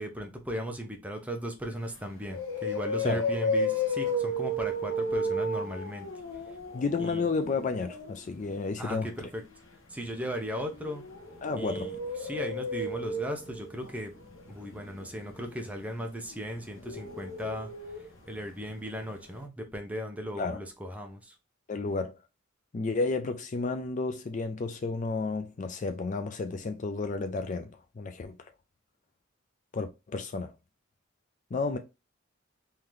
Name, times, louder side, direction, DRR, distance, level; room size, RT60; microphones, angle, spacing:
voice 1, 0.0-6.1 7.0-7.3 8.8-9.4 9.9-11.0 11.6-12.0 12.2-14.1 14.5-17.7 18.3-21.3, equal, 5° right, 0.7 m, -37 dB
sound 1, 1.8-1.9 2.3-8.2 10.3-18.3 18.6-18.7 19.1-19.2, left 1 dB, 85° left, 1.2 m, -33 dB
voice 2, 6.7-9.3 11.4-11.9 20.4-20.6 21.7-22.2 22.7-28.5 29.7-30.5 31.5-31.8, left 3 dB, 40° left, 0.4 m, -32 dB
3.8 x 2.8 x 3.1 m
head